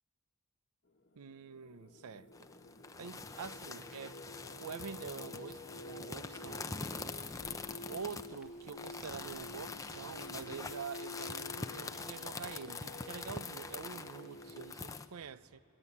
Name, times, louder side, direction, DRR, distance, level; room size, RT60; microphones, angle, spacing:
Singing, 0.9-14.8, left 1 dB, 50° left, 1.2 m, -50 dB
voice 1, 1.2-2.5 3.0-4.2 4.6-6.8 7.9-15.6, right 6 dB, 80° right, 0.5 m, -46 dB
sound 1, 2.3-15.1, left 4 dB, 15° left, 0.5 m, -44 dB
sound 2, 7.2-13.0, left 1 dB, 5° right, 1.6 m, -64 dB
21.5 x 20.5 x 9.7 m
head